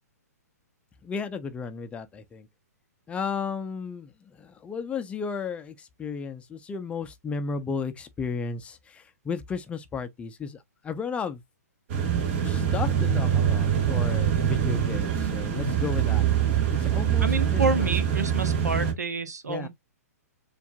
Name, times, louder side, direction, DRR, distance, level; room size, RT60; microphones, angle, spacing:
voice 1, 1.0-2.5 3.1-11.4 12.4-16.2 16.8-17.9 19.5-19.7, left 5 dB, 15° left, 0.5 m, -34 dB
sound 1, 11.9-18.9, right 9 dB, 45° right, 1.2 m, -24 dB
voice 2, 17.2-19.7, right 3 dB, 75° right, 1.0 m, -28 dB
6.9 x 2.5 x 2.3 m
figure-of-eight pair, 120°, 9 cm